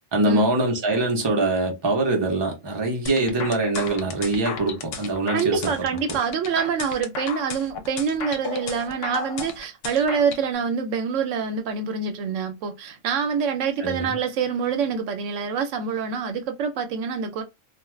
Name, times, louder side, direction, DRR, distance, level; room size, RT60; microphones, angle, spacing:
voice 1, 0.1-5.7 6.1-6.2 13.8-14.2, right 2 dB, 25° right, 0.6 m, -23 dB
sound 1, 3.1-10.4, left 5 dB, 75° left, 0.9 m, -34 dB
voice 2, 5.3-17.4, right 6 dB, 80° right, 0.9 m, -26 dB
2.4 x 2.3 x 3.1 m
omnidirectional pair, 1.3 m